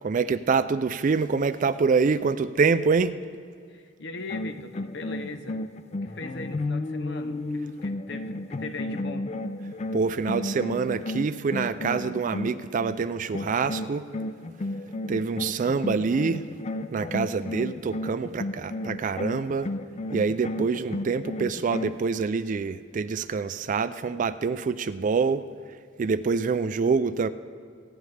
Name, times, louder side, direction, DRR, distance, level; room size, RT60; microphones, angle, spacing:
voice 1, 0.0-3.2 9.9-14.1 15.1-16.5 16.9-19.7 20.1-25.4 26.0-27.3, right 5 dB, 45° right, 13 dB, 0.4 m, -26 dB
voice 2, 3.7-5.6 6.0-9.3, left 3 dB, 65° left, 9 dB, 0.8 m, -39 dB
sound 1, 4.2-13.0 13.3-22.0, left 2 dB, 35° left, 0.4 m, -33 dB
24.5 x 9.8 x 3.3 m, 2.2 s
head